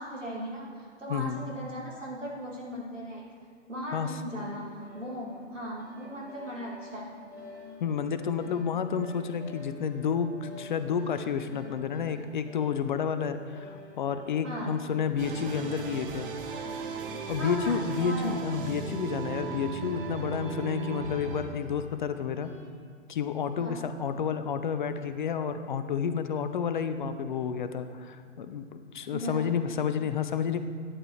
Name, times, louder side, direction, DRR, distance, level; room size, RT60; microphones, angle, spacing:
voice 1, 0.0-3.3 3.7-7.1 14.4-14.8 17.4-18.5 23.6-23.8 29.1-29.6, equal, 85° right, -4 dB, 2.7 m, -38 dB
sound 1, 4.3-22.7, left 3 dB, 10° left, 1.6 m, -49 dB
voice 2, 7.8-16.3 17.3-22.5 23.1-30.6, left 7 dB, 40° left, 10 dB, 0.5 m, -30 dB
sound 2, 15.2-21.4, right 7 dB, 45° right, 1.0 m, -36 dB
11.0 x 8.7 x 3.3 m, 2.2 s
figure-of-eight pair, 115°, 37 cm